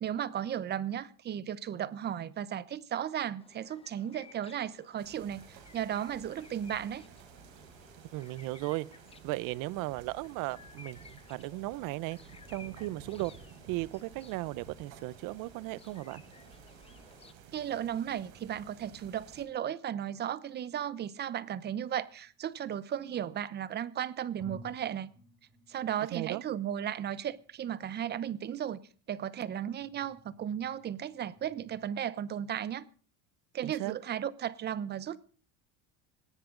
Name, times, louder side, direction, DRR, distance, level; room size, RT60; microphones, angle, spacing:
voice 1, 0.0-7.0 17.5-25.1 25.7-28.8 29.1-32.9 33.5-35.2, right 10 dB, 30° right, 18 dB, 0.9 m, -35 dB
sound 1, 3.4-17.3, left 5 dB, 15° left, 1.1 m, -57 dB
sound 2, 5.0-19.5, right 7 dB, 90° right, 5.4 m, -54 dB
voice 2, 8.1-8.9 9.2-12.2 12.5-13.3 13.7-16.2 26.1-26.4 33.6-33.9, right 19 dB, 65° right, 21 dB, 0.9 m, -36 dB
sound 3, 22.1-23.3 23.9-24.0 24.4-31.9, right 1 dB, 5° right, 4.9 m, -57 dB
18.5 x 17.5 x 3.9 m, 0.41 s
cardioid pair, 165°, 36 cm